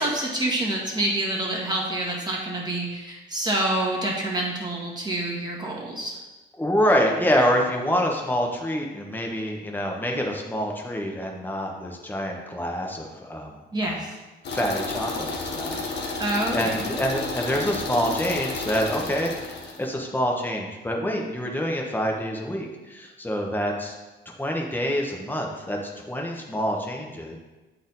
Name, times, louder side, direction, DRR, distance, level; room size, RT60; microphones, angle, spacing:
voice 1, 0.0-6.2 13.7-14.2 16.2-16.9, right 1 dB, 20° right, -3 dB, 1.9 m, -27 dB
voice 2, 6.6-13.6 13.8-14.0 14.5-16.2 16.5-23.9 24.4-27.4, equal, 10° left, 0 dB, 1.3 m, -26 dB
sound 1, 14.4-19.8, left 3 dB, 60° left, 1.4 m, -31 dB
8.1 x 4.4 x 4.1 m, 1.2 s
cardioid pair, 90°, 20 cm